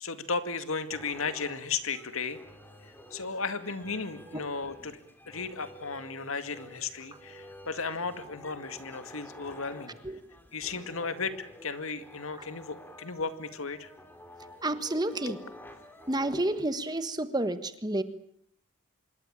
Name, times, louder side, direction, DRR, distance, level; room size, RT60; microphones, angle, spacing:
voice 1, 0.0-2.4 3.1-5.0 5.3-10.0 10.5-13.9, left 4 dB, 70° left, 10 dB, 2.2 m, -35 dB
sound 1, 0.9-17.0, left 1 dB, 10° left, 2.6 m, -50 dB
voice 2, 14.6-15.4 16.1-18.0, right 1 dB, 20° right, 11 dB, 1.4 m, -30 dB
26.0 x 22.0 x 8.8 m, 0.69 s
head